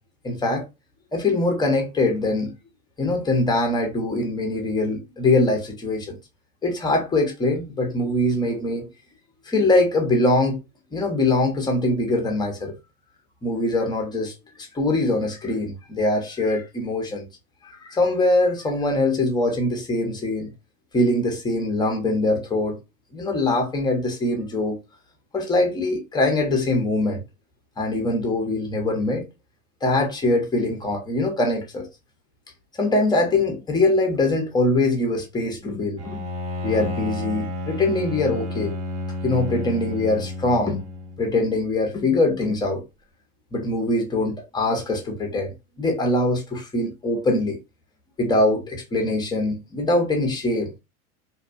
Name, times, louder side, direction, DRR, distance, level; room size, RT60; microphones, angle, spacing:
voice 1, 0.2-0.7 1.1-2.5 3.0-6.2 6.6-8.9 9.5-10.6 10.9-12.7 13.4-14.3 14.7-17.3 17.8-20.5 20.9-22.8 23.1-24.8 25.3-27.2 27.8-29.2 29.8-31.9 32.8-36.2 36.6-38.7 39.2-40.9 41.2-42.8 43.5-47.6 48.2-50.7, left 2 dB, 10° left, 0.7 m, -23 dB
Bowed string instrument, 36.0-41.3, left 2 dB, 35° right, 0.8 m, -31 dB
2.6 x 2.2 x 2.4 m
hypercardioid pair, 105°, 45 cm